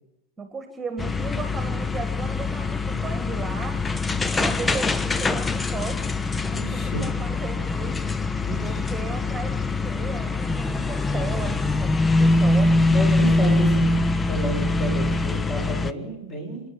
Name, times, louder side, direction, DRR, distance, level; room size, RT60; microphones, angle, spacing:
voice 1, 0.4-3.8 4.3-6.1 6.4-8.0 8.6-13.6, right 4 dB, 15° right, 7 dB, 2.0 m, -36 dB
sound 1, 1.0-15.9, left 2 dB, 10° left, 0.7 m, -23 dB
voice 2, 6.5-7.0 8.4-8.8 12.9-13.9 14.3-16.6, right 1 dB, 30° left, 2 dB, 7.4 m, -31 dB
29.5 x 10.0 x 9.5 m, 0.91 s
figure-of-eight pair, 90°, 0 cm